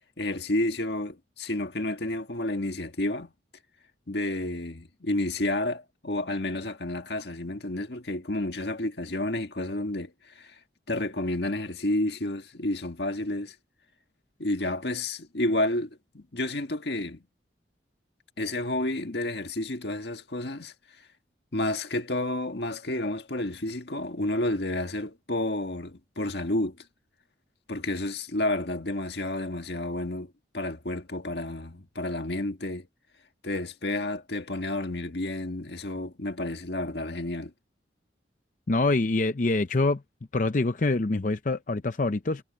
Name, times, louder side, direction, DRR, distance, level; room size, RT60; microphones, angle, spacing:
voice 1, 0.2-3.3 4.1-10.6 10.9-13.5 14.4-17.2 18.4-20.7 21.5-26.8 27.7-32.9 33.4-37.5, left 1 dB, 65° left, 1.7 m, -30 dB
voice 2, 38.7-40.0 40.3-42.4, left 2 dB, 45° left, 0.6 m, -25 dB
head